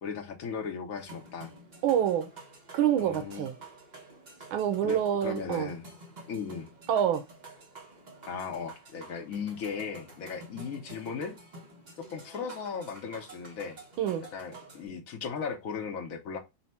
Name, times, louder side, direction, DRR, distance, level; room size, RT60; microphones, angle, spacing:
voice 1, 0.0-1.5 3.0-3.5 4.8-5.9 6.3-6.7 8.3-11.4 12.1-13.8 14.3-16.4, left 6 dB, 60° left, 0.9 m, -37 dB
sound 1, 0.9-14.9, right 2 dB, 45° right, 0.5 m, -50 dB
voice 2, 1.8-2.3 2.7-3.6 4.5-5.7 6.9-7.2 14.0-14.2, right 9 dB, 85° right, 1.5 m, -26 dB
4.2 x 2.1 x 4.2 m
omnidirectional pair, 2.2 m